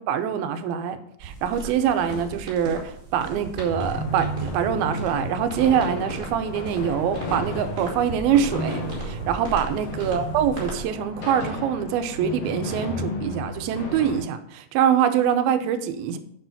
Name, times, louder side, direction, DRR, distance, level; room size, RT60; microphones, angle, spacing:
voice 1, 0.0-16.2, right 8 dB, 80° right, 9 dB, 2.5 m, -24 dB
sound 1, 1.2-10.8, right 3 dB, 30° right, 1.9 m, -37 dB
sound 2, 3.7-14.2, left 1 dB, 55° left, 1.8 m, -33 dB
7.2 x 6.9 x 5.7 m, 0.74 s
omnidirectional pair, 4.4 m